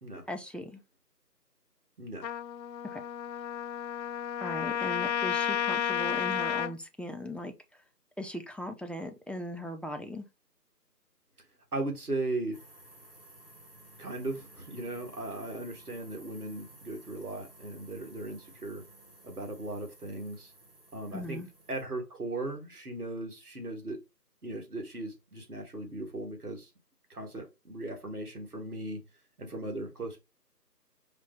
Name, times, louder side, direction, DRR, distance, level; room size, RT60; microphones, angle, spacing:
voice 1, 0.3-0.8 2.9-3.0 4.4-7.5 8.2-10.2 21.1-21.5, equal, 5° left, 0.4 m, -38 dB
voice 2, 2.0-2.3 11.7-12.6 14.0-18.8 19.2-20.5 20.9-21.4 21.7-24.0 24.4-26.7 27.1-29.0 29.4-30.2, right 2 dB, 65° right, 1.9 m, -37 dB
Trumpet, 2.2-6.7, left 9 dB, 90° left, 0.6 m, -32 dB
sound 1, 12.5-21.8, right 2 dB, 35° right, 1.2 m, -55 dB
5.1 x 2.3 x 4.5 m
figure-of-eight pair, 170°, 49 cm